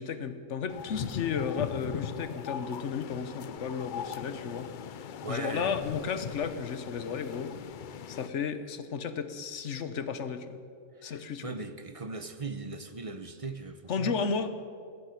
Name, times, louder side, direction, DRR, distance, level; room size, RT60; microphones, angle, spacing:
voice 1, 0.0-4.7 5.3-7.6 8.1-10.6 11.0-11.5 13.9-14.5, left 6 dB, 60° left, 11 dB, 1.2 m, -33 dB
sound 1, 0.7-8.3, left 8 dB, 75° left, 0.4 m, -39 dB
voice 2, 5.2-5.8 11.0-14.1, right 3 dB, 30° right, 10 dB, 0.7 m, -39 dB
16.5 x 10.5 x 8.3 m, 2.3 s
omnidirectional pair, 1.5 m